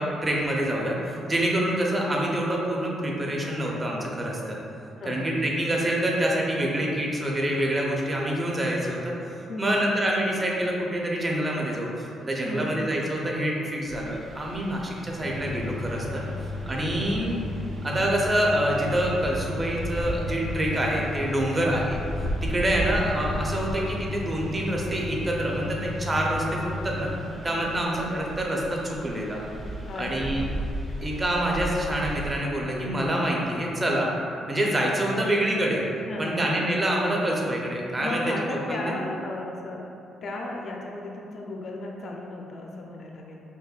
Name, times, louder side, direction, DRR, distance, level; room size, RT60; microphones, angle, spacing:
voice 1, 0.0-4.6 5.1-9.1 9.6-16.2 16.7-17.4 17.8-22.0 22.4-27.1 27.4-29.4 30.0-30.4 31.0-34.1 34.5-35.8 36.2-38.9, right 1 dB, 25° right, -2 dB, 0.6 m, -26 dB
voice 2, 5.0-5.3 9.5-9.8 12.4-12.9 16.2-16.3 17.0-17.3 21.5-21.8 22.3-22.4 27.3-28.4 29.8-30.5 36.0-36.4 38.0-39.9 40.2-43.4, left 2 dB, 55° left, 0 dB, 0.4 m, -36 dB
sound 1, 13.9-32.4, right 1 dB, 50° right, 1.5 m, -37 dB
sound 2, 15.1-27.1, left 2 dB, 85° right, 0.7 m, -35 dB
5.4 x 2.1 x 2.4 m, 2.6 s
cardioid pair, 90°, 0 cm